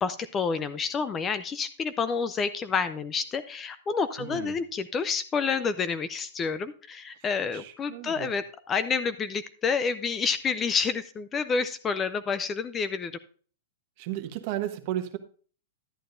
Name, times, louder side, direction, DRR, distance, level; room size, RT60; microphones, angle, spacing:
voice 1, 0.0-13.1, left 5 dB, 15° left, 13 dB, 0.4 m, -29 dB
voice 2, 4.2-4.6 7.5-8.3 14.0-15.2, right 12 dB, 45° right, 8 dB, 1.1 m, -34 dB
11.0 x 8.8 x 2.6 m, 0.41 s
supercardioid pair, 155°, 0 cm